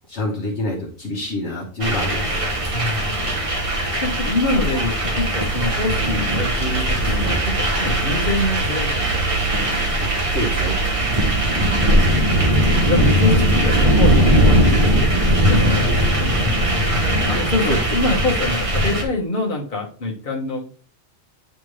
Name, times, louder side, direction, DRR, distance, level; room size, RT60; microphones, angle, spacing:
voice 1, 0.0-2.3 10.0-10.8 17.3-17.4 17.6-17.8, left 1 dB, 60° left, -1 dB, 1.3 m, -26 dB
sound 1, 1.8-19.0, right 1 dB, 30° right, 0.8 m, -19 dB
voice 2, 2.7-3.3 4.0-9.7 11.0-11.6 12.8-16.8 17.0-20.7, left 2 dB, 40° left, 0 dB, 1.3 m, -26 dB
9.2 x 3.4 x 3.1 m, 0.42 s
omnidirectional pair, 1.4 m